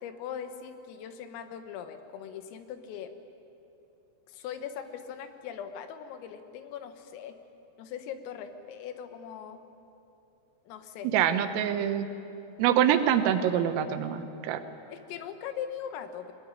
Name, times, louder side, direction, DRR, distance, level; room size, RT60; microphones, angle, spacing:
voice 1, 0.0-3.1 4.3-7.4 7.8-9.6 10.7-11.1 14.9-16.3, left 8 dB, 90° left, 8 dB, 4.0 m, -40 dB
voice 2, 11.1-12.1 12.6-14.6, right 10 dB, 90° right, 9 dB, 3.8 m, -25 dB
21.5 x 21.0 x 9.8 m, 2.8 s
omnidirectional pair, 5.8 m